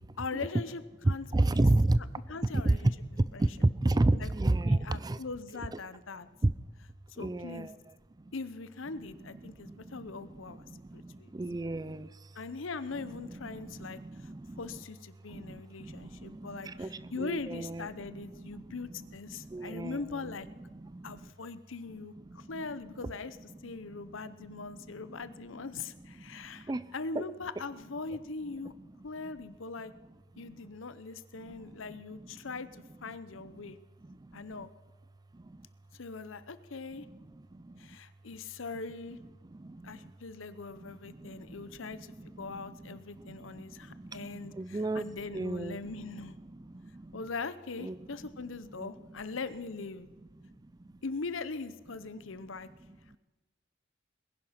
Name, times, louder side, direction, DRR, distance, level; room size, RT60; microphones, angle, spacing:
voice 1, 0.2-1.6 2.3-2.9 3.3-3.5 4.1-4.3 4.6-6.3 7.1-7.7 8.3-10.6 10.9-11.3 12.3-14.3 14.6-20.5 21.0-23.4 23.6-28.7 29.0-29.9 30.4-33.8 34.3-34.7 35.9-37.1 37.8-39.2 39.8-46.4 47.1-50.1 51.0-52.7, left 4 dB, 80° left, 14 dB, 0.8 m, -41 dB
voice 2, 1.0-2.0 2.6-2.8 3.4-5.2 6.4-6.5 7.2-7.7 11.3-12.1 13.1-13.5 13.8-14.7 15.3-15.4 15.8-17.9 19.5-20.3 20.9-21.0 26.7-26.9 27.1-27.2 44.5-45.0 45.3-45.8 47.1-47.2 47.8-48.0 48.8-48.9, right 2 dB, 20° right, 17 dB, 0.4 m, -29 dB
20.0 x 10.5 x 5.8 m, 1.2 s
head